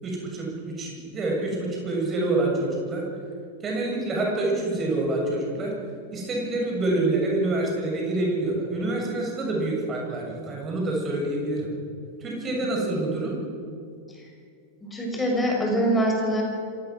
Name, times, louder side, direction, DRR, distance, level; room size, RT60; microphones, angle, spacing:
voice 1, 0.0-3.0 3.6-5.7 6.1-11.7 12.2-13.3, right 2 dB, 25° right, -1 dB, 7.1 m, -27 dB
voice 2, 14.8-16.4, equal, 10° left, 0 dB, 6.4 m, -24 dB
26.5 x 17.0 x 6.3 m, 2.3 s
figure-of-eight pair, 90°, 0 cm